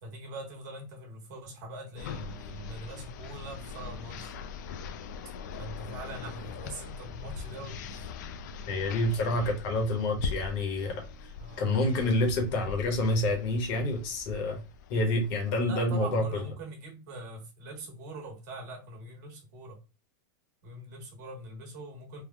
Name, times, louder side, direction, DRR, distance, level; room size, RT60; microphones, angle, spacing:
voice 1, 0.0-4.3 5.6-8.0 11.4-11.7 15.7-19.8 20.6-22.2, right 2 dB, 55° right, 1.2 m, -43 dB
sound 1, 2.0-15.6, left 5 dB, 60° left, 0.4 m, -41 dB
voice 2, 8.7-11.0 11.6-14.6 14.9-16.3, left 1 dB, 40° left, 0.8 m, -28 dB
3.3 x 2.0 x 2.2 m
supercardioid pair, 175°, 11 cm